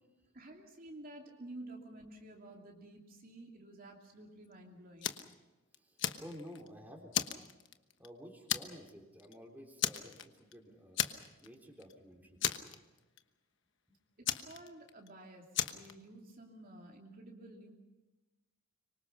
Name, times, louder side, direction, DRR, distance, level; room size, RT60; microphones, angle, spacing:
voice 1, 0.3-5.1 14.2-17.7, right 1 dB, 45° right, 0 dB, 2.9 m, -51 dB
Fire, 5.0-5.3 5.7-6.7 7.1-8.1 8.5-8.9 9.2-9.3 9.8-10.5 11.0-11.5 11.8-11.9 12.4-13.2 14.2-15.1 15.5-15.9, left 10 dB, 60° left, 1.2 m, -35 dB
voice 2, 5.7-7.3 8.0-11.0 11.4-12.6 13.9-14.0, equal, 10° right, 1 dB, 3.7 m, -52 dB
25.5 x 24.0 x 5.8 m, 1.1 s
head